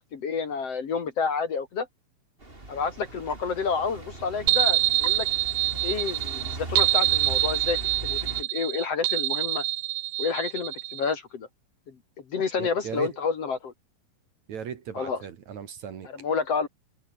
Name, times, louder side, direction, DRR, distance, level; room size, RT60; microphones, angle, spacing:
voice 1, 0.0-1.9 2.7-5.3 5.8-9.6 10.2-11.5 11.9-12.0 12.3-13.7 14.9-15.2 16.0-16.7, left 5 dB, 45° left, 2.8 m, -29 dB
sound 1, 2.4-8.4, right 2 dB, 15° right, 3.7 m, -38 dB
sound 2, 4.5-11.1, right 16 dB, 80° right, 1.6 m, -25 dB
voice 2, 12.6-13.2 14.5-16.1, right 7 dB, 55° right, 3.0 m, -37 dB
omnidirectional pair, 4.2 m